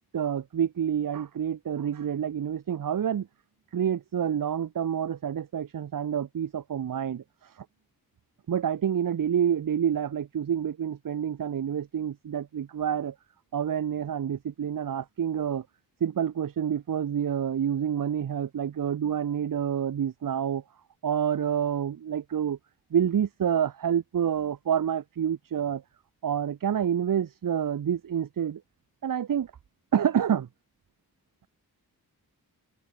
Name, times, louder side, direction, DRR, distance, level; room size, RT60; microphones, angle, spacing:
voice 1, 0.1-3.3 3.7-7.6 8.5-13.1 13.5-15.6 16.0-20.6 21.0-22.6 22.9-25.8 26.2-28.6 29.0-29.5 29.9-30.5, right 8 dB, 60° right, 0.9 m, -28 dB
open air
cardioid pair, 50°, 38 cm